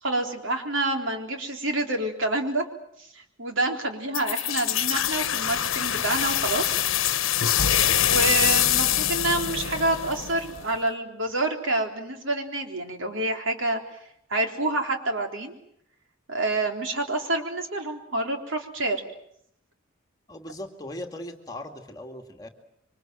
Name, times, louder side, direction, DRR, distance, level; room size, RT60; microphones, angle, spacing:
voice 1, 0.0-2.6 3.0-6.8 8.0-13.8 14.3-15.5 16.3-19.0, right 2 dB, 65° right, 3 dB, 3.8 m, -27 dB
sound 1, 4.1-10.7, left 10 dB, 75° left, 1.1 m, -24 dB
voice 2, 20.3-22.5, left 1 dB, 20° left, 3 dB, 2.3 m, -39 dB
27.0 x 25.0 x 7.8 m, 0.73 s
head